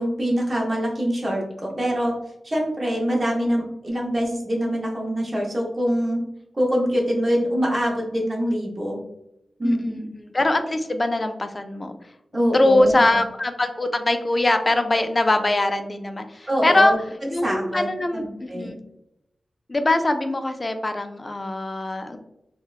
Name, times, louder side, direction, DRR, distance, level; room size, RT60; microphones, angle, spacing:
voice 1, 0.0-2.1 2.4-6.2 6.5-9.0 9.6-10.1 12.3-13.2 16.5-17.0 17.4-18.7, equal, 35° right, -2 dB, 0.7 m, -24 dB
voice 2, 9.6-11.9 12.5-16.9 17.3-18.8 19.7-22.2, left 2 dB, 30° left, 7 dB, 0.3 m, -22 dB
2.9 x 2.1 x 2.3 m, 0.83 s
wide cardioid pair, 115°, 0 cm